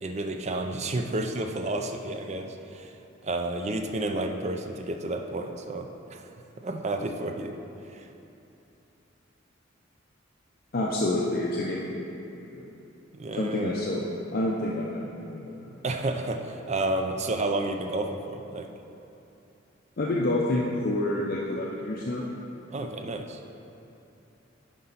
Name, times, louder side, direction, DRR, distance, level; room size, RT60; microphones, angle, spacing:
voice 1, 0.0-2.9 3.2-6.3 6.6-7.5 7.9-8.0 13.1-13.8 15.8-18.7 22.7-23.4, right 2 dB, 35° right, 5 dB, 0.5 m, -31 dB
voice 2, 10.7-12.1 12.5-12.7 13.4-14.0 14.3-15.7 20.0-22.3, left 1 dB, 50° left, -3 dB, 0.6 m, -28 dB
9.7 x 5.3 x 4.0 m, 2.9 s
head